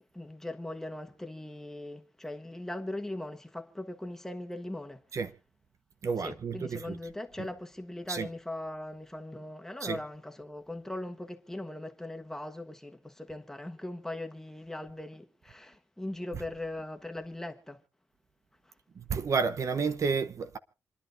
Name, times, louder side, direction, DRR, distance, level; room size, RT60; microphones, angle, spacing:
voice 1, 0.1-5.0 6.2-17.8 18.7-18.8, left 1 dB, 5° left, 1.4 m, -40 dB
voice 2, 6.0-7.0 8.1-8.3 9.8-10.0 19.0-20.6, right 5 dB, 55° right, 0.8 m, -30 dB
28.0 x 11.0 x 2.6 m
wide cardioid pair, 110°, 6 cm